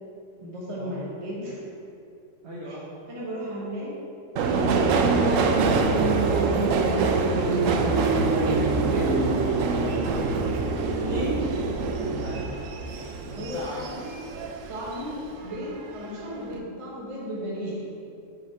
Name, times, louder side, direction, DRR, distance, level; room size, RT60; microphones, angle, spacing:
voice 1, 0.4-1.7 2.6-2.8 3.1-4.0 4.5-5.9 6.3-7.0 7.3-9.2 10.9-11.4 12.9-14.1 14.7-17.8, equal, 25° right, -6 dB, 1.1 m, -34 dB
voice 2, 2.4-2.8 7.6-8.3 9.4-10.5 12.0-12.5 13.3-13.8, right 1 dB, 55° right, -7 dB, 1.3 m, -38 dB
Subway metro underground, 4.4-15.1 15.4-16.2 16.4-16.6, right 4 dB, 80° right, 1.0 m, -24 dB
6.5 x 5.4 x 4.3 m, 2.6 s
omnidirectional pair, 1.3 m